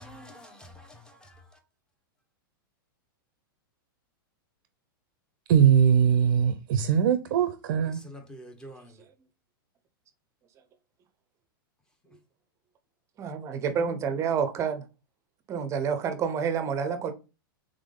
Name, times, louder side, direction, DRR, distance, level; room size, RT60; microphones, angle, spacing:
voice 1, 0.0-1.3 7.9-8.9, equal, 5° left, 0.8 m, -47 dB
voice 2, 5.5-8.0, right 8 dB, 60° right, 0.6 m, -21 dB
voice 3, 13.2-14.8 15.5-17.1, right 6 dB, 25° right, 0.7 m, -28 dB
3.6 x 3.6 x 3.7 m
hypercardioid pair, 135°, 12 cm